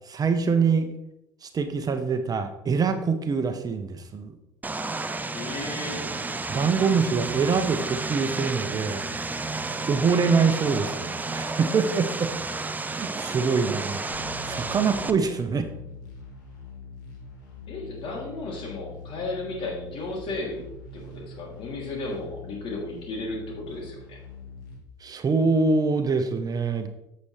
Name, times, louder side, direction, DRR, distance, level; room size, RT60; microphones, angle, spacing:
voice 1, 0.1-0.9 1.4-4.3 6.5-9.0 9.9-12.3 12.9-14.0 14.4-15.7 25.0-26.9, right 5 dB, 35° right, 8 dB, 1.0 m, -24 dB
Vehicle, 4.6-15.1, right 3 dB, 15° right, 0.7 m, -32 dB
voice 2, 5.3-6.1 17.7-20.6 20.9-24.2, left 2 dB, 55° left, -1 dB, 3.0 m, -34 dB
sound 1, 14.1-24.8, left 3 dB, 90° left, 2.3 m, -43 dB
8.3 x 7.8 x 3.3 m, 0.83 s
hypercardioid pair, 75°, 11 cm